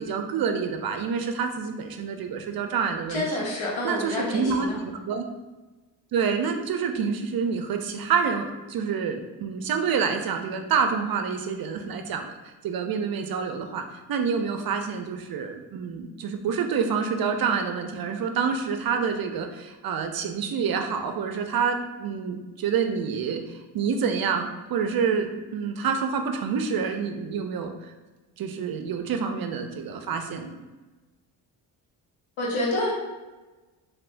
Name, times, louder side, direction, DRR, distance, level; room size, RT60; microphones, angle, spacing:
voice 1, 0.0-3.2 3.8-5.2 6.1-12.3 12.6-13.8 14.1-27.9 28.4-30.6, right 6 dB, 50° right, 6 dB, 0.5 m, -27 dB
voice 2, 3.1-4.8 32.4-32.9, left 1 dB, 75° left, -4 dB, 1.2 m, -28 dB
3.4 x 2.7 x 2.5 m, 1.2 s
supercardioid pair, 65°, 46 cm